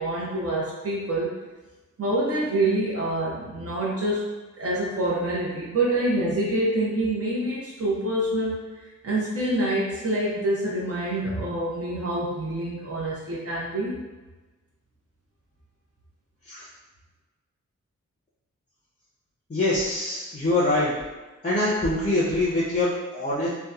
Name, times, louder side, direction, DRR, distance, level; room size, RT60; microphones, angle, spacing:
voice 1, 0.0-1.3 2.0-4.3 4.6-8.6 9.0-14.0, right 1 dB, 50° right, -6 dB, 0.6 m, -26 dB
voice 2, 19.5-20.9 21.4-23.5, left 2 dB, 25° left, -7 dB, 0.5 m, -24 dB
2.7 x 2.1 x 2.3 m, 1.2 s
wide cardioid pair, 110°, 32 cm